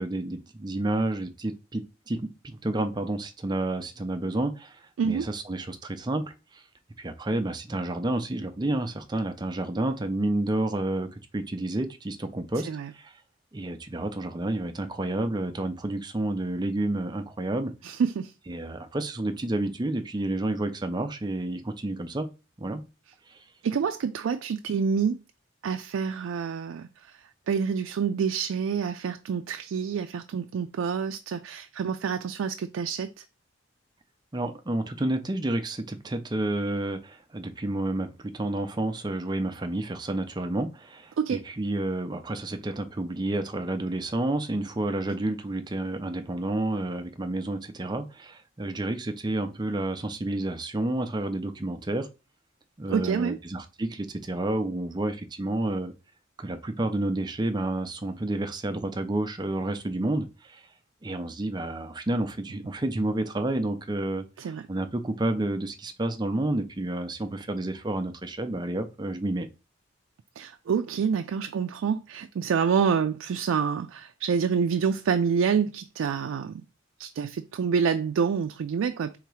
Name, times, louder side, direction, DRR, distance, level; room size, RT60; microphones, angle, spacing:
voice 1, 0.0-6.6 7.0-12.7 12.9-13.1 13.5-17.7 18.5-22.3 22.6-22.8 23.3-23.4 34.3-52.1 52.8-55.9 56.4-60.6 61.0-69.5, right 1 dB, 20° right, 0.5 m, -30 dB
voice 2, 5.0-5.3 12.6-12.9 17.8-18.3 23.6-25.2 25.6-33.2 41.2-41.4 45.1-45.2 52.9-53.4 64.4-64.7 70.4-76.6 77.0-79.2, right 6 dB, 85° right, 0.3 m, -27 dB
3.9 x 2.8 x 4.7 m
head